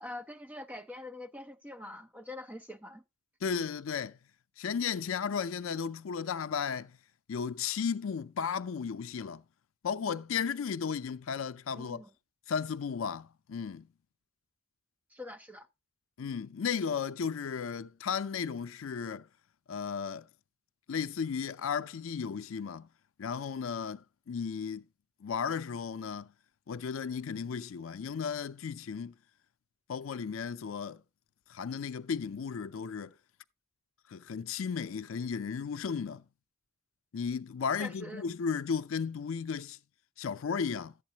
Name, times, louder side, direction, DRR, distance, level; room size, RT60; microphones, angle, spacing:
voice 1, 0.0-3.0 11.7-12.1 15.1-15.7 37.8-38.2, left 1 dB, 10° right, 0.6 m, -44 dB
voice 2, 3.4-4.2 4.6-7.0 7.3-9.4 9.8-12.0 12.5-13.9 16.2-19.3 19.7-20.3 20.9-22.9 23.2-24.8 25.2-26.3 26.7-29.1 29.9-31.0 31.5-33.1 34.1-36.2 37.1-39.8 40.2-40.9, left 6 dB, 70° left, 0.4 m, -34 dB
11.5 x 8.2 x 2.8 m
head